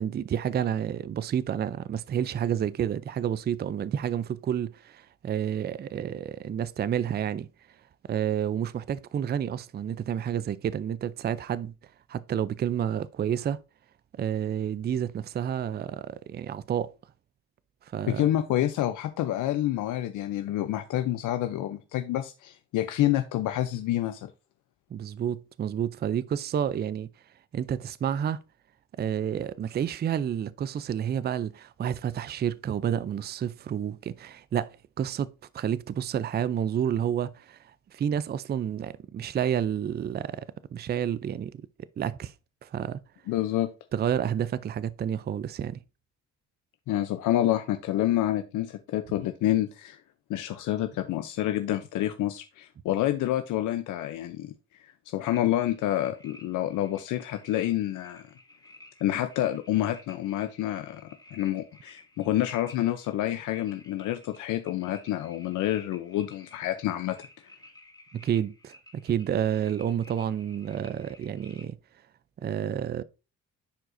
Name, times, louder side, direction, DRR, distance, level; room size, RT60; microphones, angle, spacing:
voice 1, 0.0-7.5 8.1-11.7 12.1-13.6 14.2-16.9 17.9-18.2 24.9-27.1 27.5-28.4 29.0-37.6 37.9-40.4 40.7-41.6 42.0-42.3 42.6-43.0 43.9-45.8 68.1-68.7 69.0-71.8 72.4-73.0, right 9 dB, 35° right, 0.4 m, -30 dB
voice 2, 18.1-24.3 43.3-43.7 46.9-50.0 50.3-58.2 59.0-61.0 61.3-67.2, left 13 dB, 80° left, 0.6 m, -28 dB
sound 1, 55.2-71.7, left 1 dB, 15° left, 2.1 m, -54 dB
10.0 x 4.7 x 2.6 m
cardioid pair, 90°, 30 cm